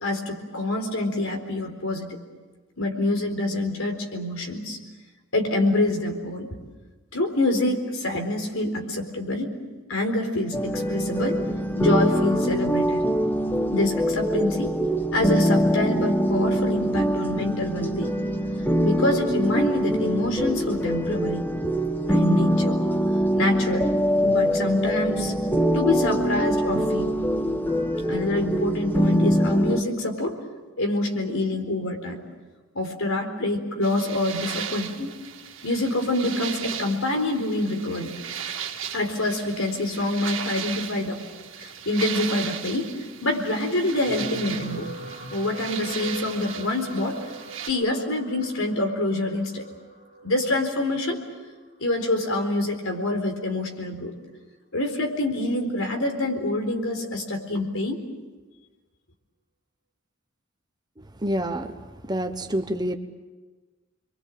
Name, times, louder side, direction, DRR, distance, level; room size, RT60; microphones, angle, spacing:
voice 1, 0.0-2.2 2.8-4.8 5.3-6.5 7.1-9.5 9.9-11.4 11.8-13.1 13.7-14.7 15.1-18.2 18.8-21.5 22.1-22.8 23.3-23.9 24.2-25.3 25.7-27.2 28.1-30.4 30.8-32.2 32.7-35.2 35.6-38.1 38.9-41.2 41.6-42.9 43.2-44.9 45.3-47.2 47.7-49.7 50.2-51.2 51.8-54.1 54.7-58.0, left 2 dB, 75° left, 3 dB, 4.2 m, -26 dB
sound 1, 10.5-29.8, equal, 10° left, 1.2 m, -23 dB
sound 2, 33.8-47.7, right 8 dB, 65° right, 2.1 m, -36 dB
sound 3, 43.9-52.4 53.1-53.4 53.6-53.7, right 2 dB, 45° left, 5.9 m, -42 dB
voice 2, 61.2-61.7 62.1-63.0, right 1 dB, 20° right, 7 dB, 1.1 m, -27 dB
28.0 x 23.0 x 7.6 m, 1.3 s
head